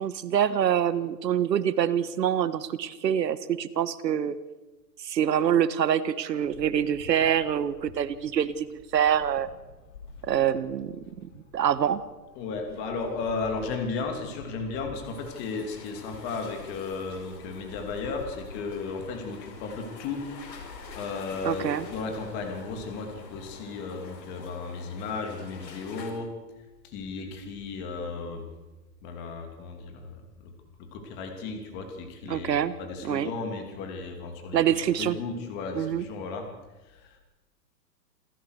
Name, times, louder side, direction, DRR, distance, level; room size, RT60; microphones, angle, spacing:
voice 1, 0.0-4.4 5.0-9.5 10.2-12.0 21.4-21.9 32.3-32.7 33.0-33.3 34.5-35.2 35.8-36.0, right 9 dB, 80° right, 14 dB, 1.6 m, -25 dB
sound 1, 6.4-23.6, left 4 dB, 50° left, 3.8 m, -49 dB
voice 2, 12.3-26.3 26.8-28.5 29.0-30.5 30.8-34.6 35.0-36.5 36.8-37.2, left 4 dB, 20° left, 5 dB, 2.8 m, -35 dB
sound 2, 15.0-26.1, left 5 dB, 85° left, 5.2 m, -47 dB
27.5 x 14.5 x 6.6 m, 1.1 s
hypercardioid pair, 170°, 49 cm